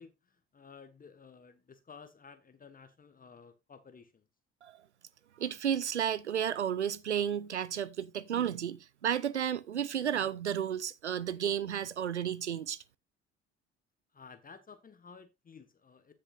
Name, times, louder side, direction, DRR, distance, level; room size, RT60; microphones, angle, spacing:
voice 1, 0.0-4.2 14.1-16.1, left 5 dB, 25° left, 1.1 m, -54 dB
voice 2, 5.4-12.8, right 9 dB, 85° right, 0.5 m, -32 dB
15.0 x 6.6 x 2.4 m
figure-of-eight pair, 55°, 33 cm